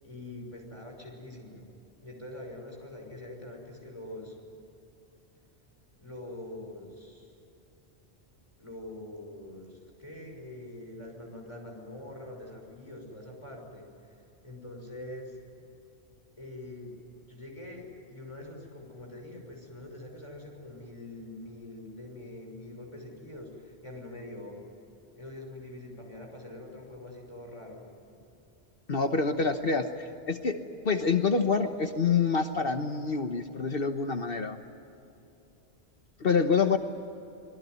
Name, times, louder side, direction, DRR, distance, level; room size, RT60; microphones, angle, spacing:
voice 1, 0.0-1.7 2.0-4.4 6.0-7.3 8.6-15.4 16.4-16.9 17.3-24.6 25.2-27.9, left 1 dB, 25° left, 0 dB, 6.2 m, -44 dB
voice 2, 28.9-30.6 30.8-34.6 36.2-36.8, left 5 dB, 60° left, 6 dB, 1.3 m, -27 dB
27.0 x 21.5 x 9.5 m, 2.9 s
omnidirectional pair, 1.1 m